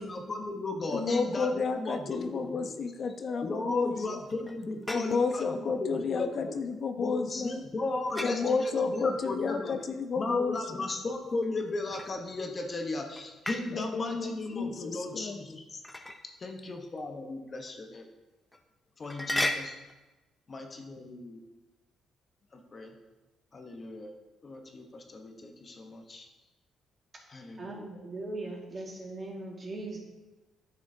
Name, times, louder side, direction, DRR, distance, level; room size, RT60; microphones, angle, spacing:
voice 1, 0.0-2.7 3.4-6.6 7.0-9.8 10.2-15.8 16.1-18.1 19.0-19.8 20.5-21.4 22.5-22.9 23.5-24.1 24.4-26.3 27.3-27.9, left 2 dB, 35° left, 3 dB, 1.0 m, -36 dB
voice 2, 0.9-4.2 4.9-7.6 8.2-10.6 13.7-15.4, left 4 dB, 50° left, 7 dB, 0.4 m, -31 dB
sound 1, 4.3-5.4 8.1-8.5 11.4-12.5 13.2-13.7 15.8-16.2 17.0-17.1 17.7-17.8 18.5-18.6 19.0-19.9, left 1 dB, 10° left, 0.6 m, -34 dB
voice 3, 27.6-30.0, right 2 dB, 35° right, -2 dB, 2.0 m, -39 dB
10.5 x 6.2 x 2.7 m, 1.1 s
cardioid pair, 90°, 0 cm